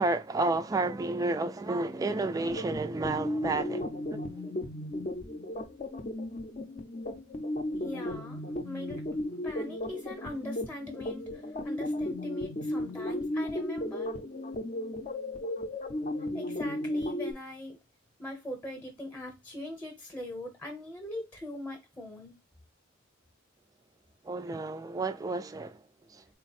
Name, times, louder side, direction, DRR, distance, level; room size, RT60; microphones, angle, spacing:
voice 1, 0.0-4.2 24.2-26.3, right 2 dB, 20° right, 0.3 m, -31 dB
sound 1, 2.3-17.3, left 1 dB, 35° left, 0.6 m, -35 dB
voice 2, 7.8-9.0 9.4-14.1 16.3-17.8 18.2-22.3, left 1 dB, 10° left, 0.8 m, -41 dB
4.0 x 2.1 x 4.1 m
head